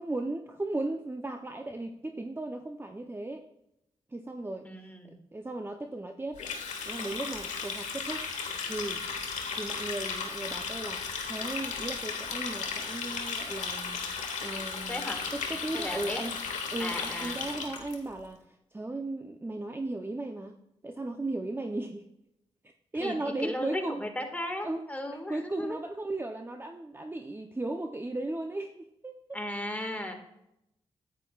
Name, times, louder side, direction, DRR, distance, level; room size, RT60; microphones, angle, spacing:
voice 1, 0.0-3.4 4.1-4.9 5.3-6.4 6.9-8.3 8.7-9.0 9.6-14.0 14.4-16.4 16.7-18.4 18.7-20.6 20.8-22.0 22.9-24.1 24.6-29.4, right 2 dB, 20° right, 4 dB, 0.7 m, -36 dB
voice 2, 4.6-5.1 14.9-15.2 15.7-16.2 16.8-17.4 23.0-25.8 29.3-30.1, left 1 dB, 10° left, 4 dB, 1.8 m, -36 dB
Water tap faucet, 6.4-17.9, left 5 dB, 80° left, 1.2 m, -35 dB
9.7 x 8.9 x 2.4 m, 0.82 s
cardioid pair, 50°, 12 cm